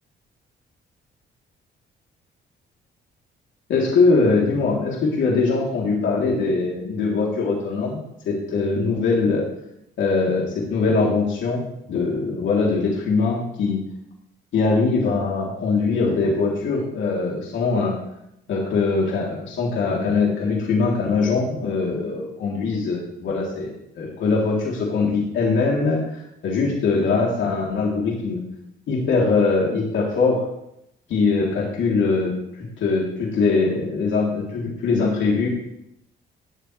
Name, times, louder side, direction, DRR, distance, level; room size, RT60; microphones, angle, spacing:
voice 1, 3.7-9.4 10.0-11.6 11.9-13.9 14.5-18.0 18.5-26.2 26.4-28.4 28.9-30.4 31.1-35.5, left 4 dB, 75° left, -3 dB, 3.5 m, -22 dB
19.5 x 7.9 x 3.4 m, 0.79 s
cardioid pair, 90°, 20 cm